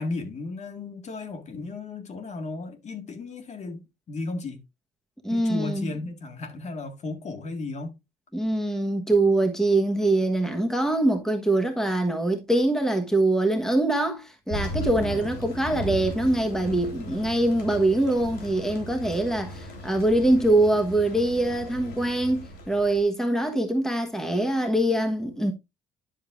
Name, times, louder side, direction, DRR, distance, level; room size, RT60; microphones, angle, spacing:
voice 1, 0.0-4.6 5.3-8.0 15.0-15.3, left 3 dB, 40° left, 1.8 m, -35 dB
voice 2, 5.2-5.9 8.3-25.5, right 1 dB, 5° left, 1.2 m, -23 dB
Thunder, 14.5-23.0, left 1 dB, 70° left, 3.6 m, -37 dB
10.5 x 6.5 x 2.5 m
cardioid pair, 110°, 17 cm